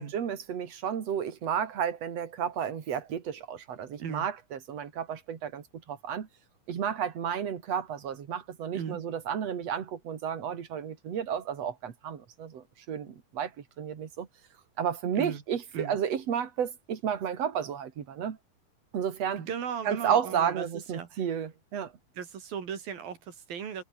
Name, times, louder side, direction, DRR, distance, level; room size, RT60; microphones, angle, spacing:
voice 1, 0.0-6.3 6.7-13.5 13.8-14.3 14.8-18.4 18.9-19.4 19.8-21.9, right 8 dB, 50° right, 3.2 m, -32 dB
voice 2, 19.4-20.7 20.9-21.2 22.2-23.8, right 7 dB, 80° right, 5.0 m, -37 dB
omnidirectional pair, 4.1 m